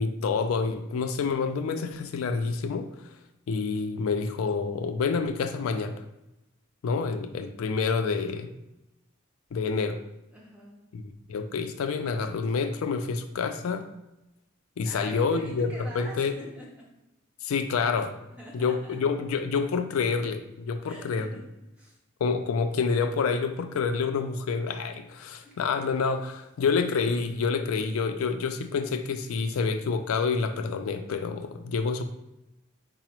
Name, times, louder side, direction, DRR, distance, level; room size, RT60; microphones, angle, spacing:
voice 1, 0.0-3.1 3.5-6.0 6.8-8.5 9.5-10.0 10.9-11.0 11.3-13.9 14.8-16.3 17.4-18.2 18.5-21.3 22.2-32.0, left 5 dB, 90° left, 8 dB, 0.4 m, -28 dB
voice 2, 10.3-10.8 14.8-16.9 18.3-19.0 20.9-21.5 21.7-22.0 25.4-26.0, left 1 dB, 5° right, -4 dB, 0.9 m, -44 dB
4.8 x 2.0 x 4.3 m, 0.92 s
head